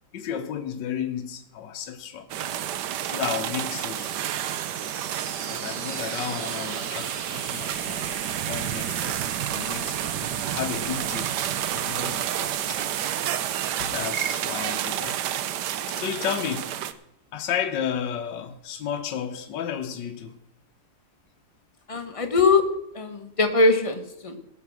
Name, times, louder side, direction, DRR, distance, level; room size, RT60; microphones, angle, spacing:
voice 1, 0.1-2.3 3.1-4.2 5.5-8.1 8.4-9.2 9.5-11.3 11.7-13.1 13.8-15.2 15.9-16.7 17.3-20.4, left 8 dB, 75° left, 5 dB, 1.4 m, -33 dB
sound 1, 2.3-16.9, right 11 dB, 70° right, 1.2 m, -30 dB
sound 2, 3.8-15.5, right 4 dB, 50° right, 1.7 m, -41 dB
voice 2, 21.9-22.6 22.9-24.4, left 3 dB, 25° left, 6 dB, 0.9 m, -21 dB
17.5 x 6.4 x 6.2 m, 0.77 s
omnidirectional pair, 2.1 m